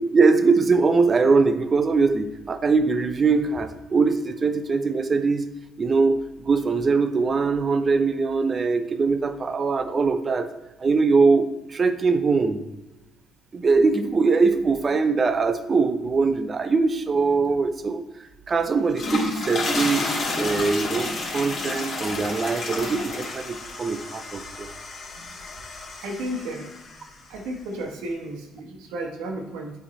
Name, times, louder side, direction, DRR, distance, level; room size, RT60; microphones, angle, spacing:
voice 1, 0.0-5.5 5.8-10.5 10.8-12.6 13.5-18.1 18.5-24.7, right 4 dB, 40° right, 10 dB, 0.6 m, -22 dB
sound 1, 18.8-27.1, left 2 dB, 50° left, 2.0 m, -31 dB
voice 2, 26.0-26.7 27.3-29.7, right 1 dB, 80° right, 2 dB, 1.2 m, -33 dB
8.5 x 3.5 x 4.2 m, 1.0 s
hypercardioid pair, 60°, 0 cm